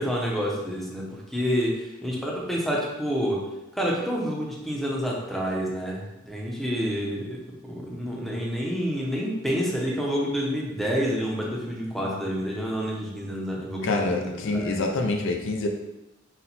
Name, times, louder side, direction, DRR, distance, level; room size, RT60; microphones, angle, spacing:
voice 1, 0.0-3.4 3.7-15.1, equal, ahead, -3 dB, 0.7 m, -28 dB
voice 2, 13.8-15.7, left 3 dB, 65° left, 3 dB, 0.5 m, -26 dB
4.3 x 2.2 x 4.0 m, 0.95 s
head